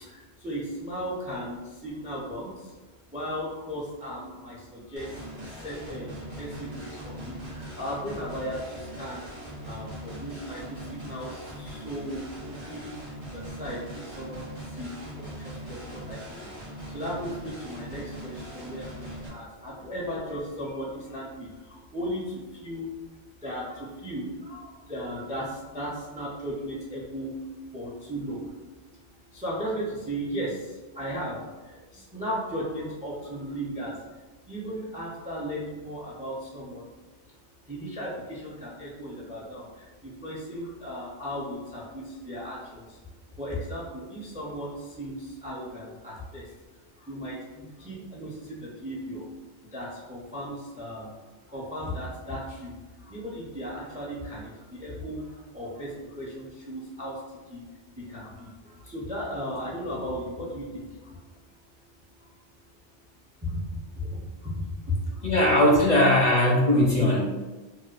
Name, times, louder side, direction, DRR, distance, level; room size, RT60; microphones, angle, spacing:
voice 1, 0.4-1.6 1.8-2.5 3.1-5.1 5.6-6.5 6.7-8.6 9.0-9.2 9.7-10.6 11.0-11.3 11.6-12.3 12.7-13.0 13.6-14.4 14.8-15.3 15.7-16.2 16.9-18.9 19.3-21.5 21.9-22.2 22.6-22.9 23.4-24.6 24.9-25.4 25.7-27.3 27.7-28.5 29.3-30.5 31.0-31.4 31.9-33.9 34.5-36.8 37.7-39.6 40.2-42.8 43.4-44.7 45.0-46.4 47.1-49.2 49.7-51.1 51.5-52.7 53.1-54.5 54.8-55.2 55.5-55.9 56.2-57.1 57.5-57.6 58.1-58.5 58.9-60.8 63.4-63.5 64.0-64.1 64.5-64.6, equal, 15° right, -4 dB, 0.3 m, -35 dB
sound 1, 5.0-19.3, right 1 dB, 30° right, 0.8 m, -40 dB
voice 2, 65.2-67.2, left 1 dB, 50° left, -3 dB, 0.5 m, -19 dB
4.2 x 2.2 x 2.4 m, 1.2 s
omnidirectional pair, 1.1 m